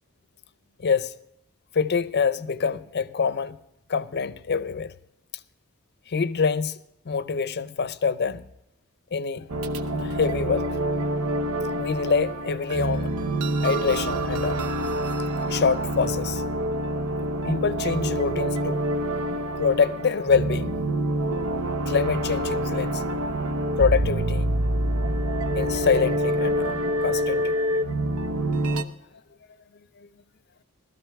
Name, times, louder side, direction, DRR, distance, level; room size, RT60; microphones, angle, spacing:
voice 1, 0.8-1.1 1.7-3.6 3.9-4.9 6.1-6.8 7.0-8.4 9.1-9.5 10.0-10.7 11.8-13.1 13.6-14.7 15.5-16.4 17.5-18.8 19.6-20.8 21.9-23.0 23.8-24.5 25.5-27.8 30.0-30.1, left 5 dB, 50° left, 0.6 m, -25 dB
sound 1, 9.5-28.8, right 1 dB, 85° right, 0.8 m, -26 dB
15.5 x 13.5 x 3.5 m
head